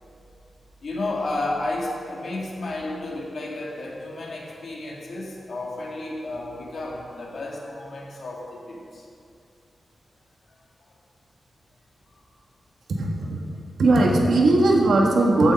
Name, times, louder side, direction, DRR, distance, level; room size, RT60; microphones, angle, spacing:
voice 1, 0.8-9.1 10.5-10.6, left 2 dB, 60° left, -3 dB, 2.0 m, -32 dB
voice 2, 13.0-13.4 13.8-15.5, right 2 dB, 75° right, 0 dB, 1.6 m, -18 dB
14.5 x 6.5 x 5.2 m, 2.4 s
wide cardioid pair, 165°, 0 cm